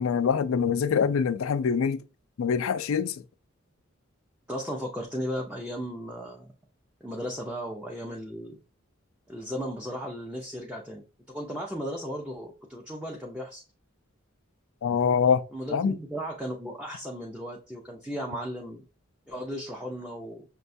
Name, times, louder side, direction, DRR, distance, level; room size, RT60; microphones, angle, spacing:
voice 1, 0.0-2.0 2.4-3.2 14.8-15.4 15.7-16.0, left 6 dB, 80° left, 0.4 m, -24 dB
voice 2, 4.5-6.5 7.0-8.6 9.3-13.6 15.5-18.8 19.3-20.4, equal, 5° right, 0.5 m, -36 dB
6.1 x 2.2 x 2.6 m
head